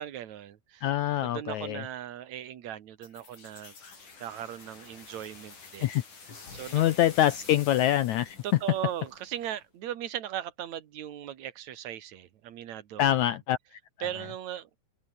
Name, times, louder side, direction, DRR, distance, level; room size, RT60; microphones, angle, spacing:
voice 1, 0.0-0.9 1.2-3.7 4.2-5.9 6.5-6.9 8.4-13.0 14.0-14.8, right 11 dB, 55° right, 2.6 m, -38 dB
voice 2, 0.8-1.8 5.8-6.0 6.7-8.4 13.0-14.1, left 12 dB, 80° left, 1.6 m, -25 dB
sound 1, 3.0-9.6, left 4 dB, 55° left, 7.6 m, -49 dB
open air
omnidirectional pair, 4.3 m